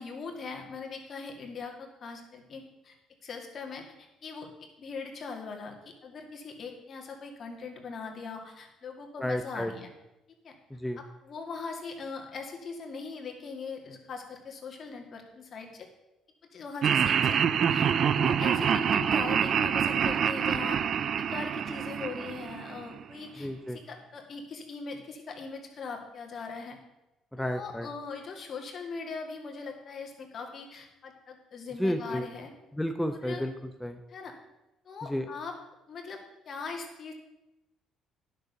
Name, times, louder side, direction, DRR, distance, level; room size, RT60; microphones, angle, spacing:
voice 1, 0.0-3.0 3.2-3.9 4.2-9.9 10.4-10.5 11.0-15.9 16.5-17.4 17.7-20.9 21.2-26.8 27.4-32.5 33.2-33.4 34.1-34.3 34.8-35.6 35.9-37.1, left 4 dB, 50° left, 2 dB, 2.4 m, -40 dB
voice 2, 9.2-9.7 10.7-11.0 23.4-23.8 27.3-27.9 31.8-32.2 32.8-34.0 35.0-35.3, equal, 5° left, 6 dB, 0.8 m, -32 dB
Laughter, 16.8-23.0, right 8 dB, 55° right, 0.5 m, -26 dB
10.0 x 6.6 x 6.7 m, 0.95 s
supercardioid pair, 65°, 0 cm